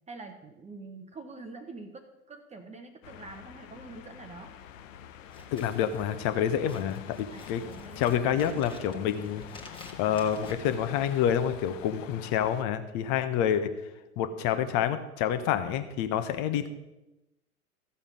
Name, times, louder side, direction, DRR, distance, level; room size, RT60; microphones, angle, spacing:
voice 1, 0.1-4.5 7.3-8.4, right 3 dB, 15° right, 5 dB, 1.1 m, -46 dB
sound 1, 3.0-12.6, left 9 dB, 60° left, 0.9 m, -46 dB
Scissors, 5.3-11.5, left 2 dB, 10° left, 1.6 m, -50 dB
voice 2, 5.5-7.6 8.0-9.4 10.0-13.9 14.2-16.7, left 9 dB, 40° left, 10 dB, 1.2 m, -28 dB
14.0 x 7.0 x 5.4 m, 0.99 s
figure-of-eight pair, 95°, 43 cm